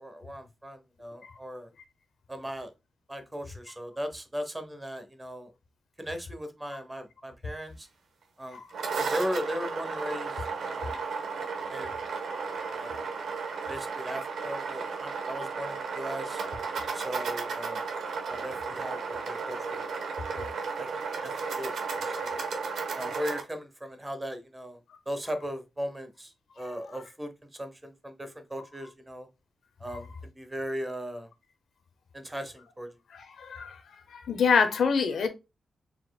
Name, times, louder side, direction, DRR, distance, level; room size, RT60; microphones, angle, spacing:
voice 1, 0.0-1.7 2.3-2.7 3.1-5.5 6.0-7.9 8.4-8.6 9.0-11.0 11.7-11.9 12.7-13.1 13.7-16.4 16.9-17.8 18.3-19.9 20.3-20.9 21.2-21.3 21.6-22.4 23.0-24.8 25.1-29.3 29.8-31.3 32.1-32.9, equal, 15° right, 0.8 m, -38 dB
sound 1, 8.5-23.4, right 5 dB, 75° right, 1.0 m, -34 dB
voice 2, 33.1-33.8 34.1-35.3, left 6 dB, 75° left, 0.8 m, -27 dB
4.3 x 4.0 x 2.3 m
wide cardioid pair, 115°, 0 cm